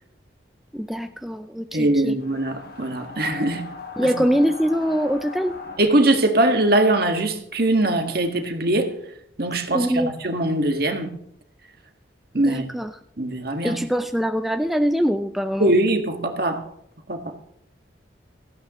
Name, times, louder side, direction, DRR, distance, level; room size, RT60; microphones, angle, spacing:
voice 1, 0.7-2.2 4.0-5.5 9.7-10.1 12.4-12.9 13.6-15.7, equal, ahead, 0.4 m, -23 dB
voice 2, 1.7-3.7 4.0-4.1 5.8-8.9 9.4-11.2 12.3-12.7 13.2-13.8 15.6-16.6 17.1-17.3, right 1 dB, 55° right, 1.8 m, -21 dB
sound 1, 2.2-5.8, left 4 dB, 55° left, 1.8 m, -38 dB
17.5 x 14.5 x 3.1 m
head